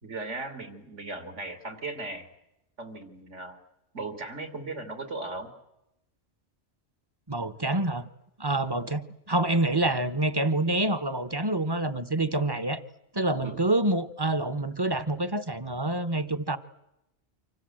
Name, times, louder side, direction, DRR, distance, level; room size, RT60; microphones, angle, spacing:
voice 1, 0.0-2.3 2.8-3.6 3.9-5.5 13.4-13.6, right 2 dB, 75° right, 7 dB, 3.2 m, -37 dB
voice 2, 7.3-8.0 8.4-12.8 13.1-16.6, right 1 dB, 20° right, 12 dB, 0.9 m, -27 dB
28.5 x 25.5 x 7.7 m, 0.89 s
omnidirectional pair, 1.3 m